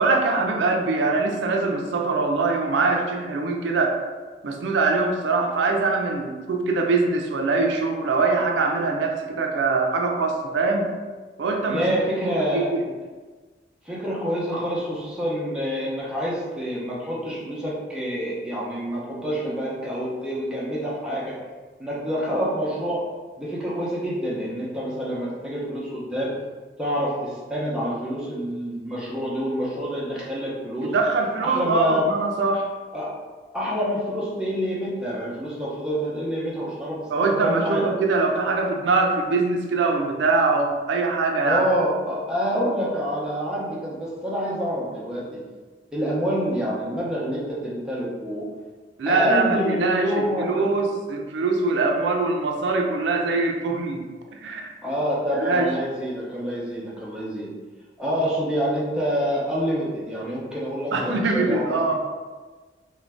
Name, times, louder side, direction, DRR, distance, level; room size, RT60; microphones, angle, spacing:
voice 1, 0.0-4.0 4.4-10.9 11.4-11.8 12.5-12.8 30.8-32.7 37.1-41.6 49.0-54.0 54.3-54.7 55.3-55.7 60.9-61.9, right 3 dB, 85° right, 2 dB, 0.4 m, -23 dB
voice 2, 11.7-12.7 13.8-21.4 21.8-23.0 23.4-26.3 26.8-30.9 31.4-32.1 32.9-33.1 33.5-37.0 37.3-37.8 41.4-45.4 45.9-48.5 49.1-50.6 54.8-57.5 58.0-61.9, equal, 5° right, -7 dB, 0.5 m, -27 dB
2.5 x 2.2 x 3.2 m, 1.4 s
head